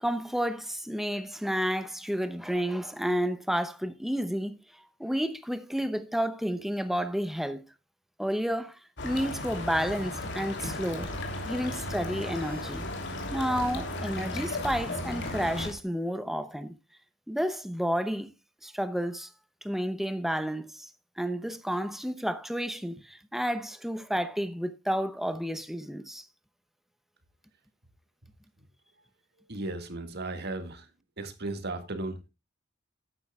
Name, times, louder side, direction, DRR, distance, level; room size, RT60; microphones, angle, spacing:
voice 1, 0.0-4.6 5.0-7.6 8.2-11.1 11.4-12.9 13.3-16.8 17.3-18.3 18.6-19.3 19.6-20.9 21.2-26.2, equal, ahead, 0.8 m, -31 dB
sound 1, 9.0-15.7, left 1 dB, 60° left, 3.0 m, -35 dB
sound 2, 11.0-11.3 12.0-12.7 13.6-14.3 14.7-14.9 15.2-15.8, left 1 dB, 30° left, 1.8 m, -44 dB
voice 2, 29.5-30.9 31.2-32.2, right 2 dB, 55° right, 1.8 m, -35 dB
13.0 x 9.8 x 2.3 m
head